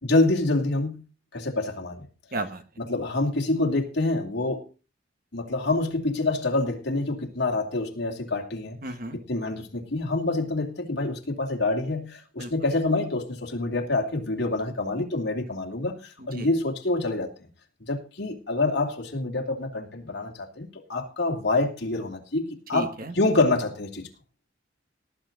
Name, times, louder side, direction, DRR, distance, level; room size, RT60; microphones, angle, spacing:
voice 1, 0.0-1.0 1.3-2.1 2.8-4.6 5.3-8.8 9.1-17.3 17.9-24.1, left 2 dB, 55° left, 2 dB, 2.7 m, -26 dB
voice 2, 2.3-2.6 8.8-9.2 12.4-12.5 16.2-16.5 22.7-23.1, right 2 dB, 45° right, 9 dB, 1.4 m, -33 dB
18.5 x 8.6 x 3.9 m, 0.33 s
head